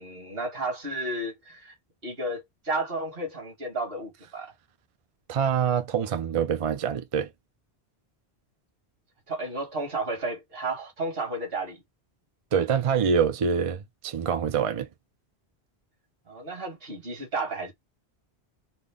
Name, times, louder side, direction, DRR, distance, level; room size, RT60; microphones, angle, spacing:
voice 1, 0.0-1.7 2.0-4.5 9.3-11.8 16.3-17.7, right 2 dB, 65° right, 1.8 m, -32 dB
voice 2, 5.3-7.3 12.5-14.9, right 7 dB, 45° right, 0.4 m, -25 dB
4.2 x 2.1 x 3.4 m
omnidirectional pair, 1.1 m